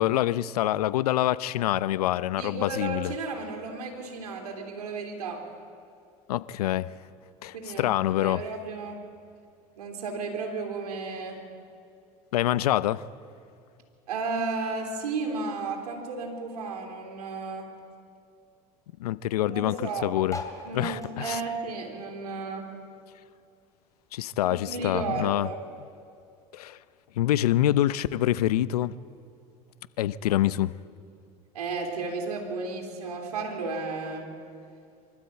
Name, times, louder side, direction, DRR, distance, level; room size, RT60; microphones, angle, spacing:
voice 1, 0.0-3.1 6.3-6.9 7.4-8.4 12.3-13.0 19.0-19.8 20.0-20.4 20.7-21.4 24.1-25.5 26.5-26.8 27.2-28.9 30.0-30.7, left 13 dB, 85° left, 0.6 m, -26 dB
voice 2, 2.4-5.5 7.5-9.0 9.8-11.4 14.1-17.7 19.5-20.1 20.6-22.7 24.4-25.6 31.5-34.3, right 4 dB, 85° right, 3.5 m, -33 dB
sound 1, 20.2-23.0 23.3-24.9 25.4-25.5 25.6-25.7 25.9-26.3 27.1-27.2, left 3 dB, 15° left, 3.2 m, -42 dB
25.0 x 13.0 x 8.4 m
hypercardioid pair, 85°, 19 cm